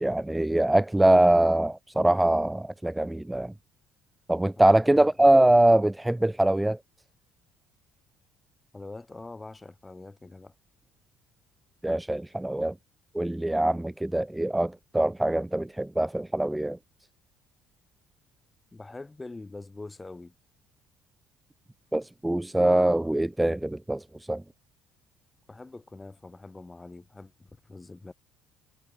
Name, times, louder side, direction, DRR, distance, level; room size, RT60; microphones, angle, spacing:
voice 1, 0.0-3.5 4.3-6.8 11.8-12.7 13.1-16.8 21.9-24.4, right 1 dB, 10° right, 0.3 m, -23 dB
voice 2, 4.9-5.4 8.7-10.5 18.7-20.3 25.5-28.1, left 3 dB, 20° left, 2.2 m, -44 dB
hypercardioid pair, 65°, 0 cm